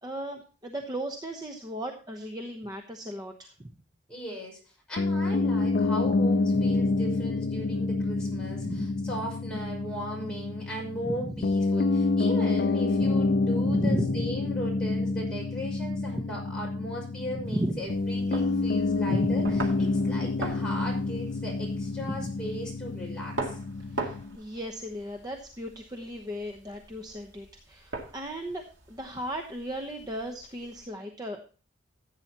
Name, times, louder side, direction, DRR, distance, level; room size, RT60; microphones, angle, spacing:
voice 1, 0.0-3.7 8.5-8.9 11.1-11.3 13.6-14.3 16.1-16.3 17.5-17.8 19.1-19.6 22.0-22.2 23.9-31.4, right 1 dB, 20° right, 3 dB, 1.0 m, -35 dB
voice 2, 4.1-4.6 4.9-19.4 19.8-23.6, equal, 5° left, -3 dB, 5.6 m, -37 dB
Piano, 5.0-24.4, left 3 dB, 50° left, 0.4 m, -28 dB
sound 1, 17.4-30.9, right 3 dB, 85° right, 2.3 m, -42 dB
15.0 x 8.8 x 2.9 m, 0.36 s
head